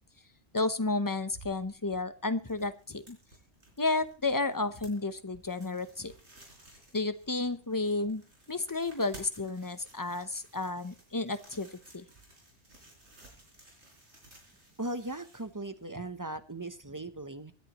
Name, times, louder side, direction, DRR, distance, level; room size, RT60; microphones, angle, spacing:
voice 1, 0.5-3.2 3.8-6.1 6.9-8.2 8.5-11.7 11.9-12.0, left 3 dB, 20° left, 12 dB, 0.7 m, -32 dB
sound 1, 1.0-16.1, right 2 dB, 75° right, 4.4 m, -57 dB
voice 2, 14.8-17.5, right 2 dB, 20° right, 11 dB, 0.7 m, -38 dB
25.0 x 10.5 x 3.0 m, 0.35 s
omnidirectional pair, 1.2 m